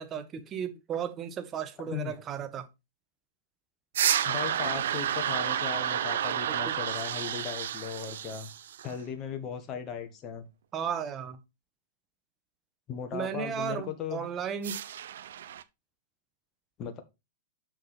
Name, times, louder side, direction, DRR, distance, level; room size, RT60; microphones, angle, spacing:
voice 1, 0.0-2.7 6.5-6.8 10.7-11.4 13.1-14.8, right 8 dB, 25° right, 1.3 m, -35 dB
voice 2, 1.8-2.1 4.2-8.5 8.8-10.5 12.9-14.2 16.8-17.0, left 7 dB, 30° left, 1.6 m, -37 dB
sound 1, 3.9-9.0 14.6-15.6, right 10 dB, 60° right, 0.6 m, -30 dB
6.6 x 6.5 x 4.4 m
figure-of-eight pair, 100°, 0 cm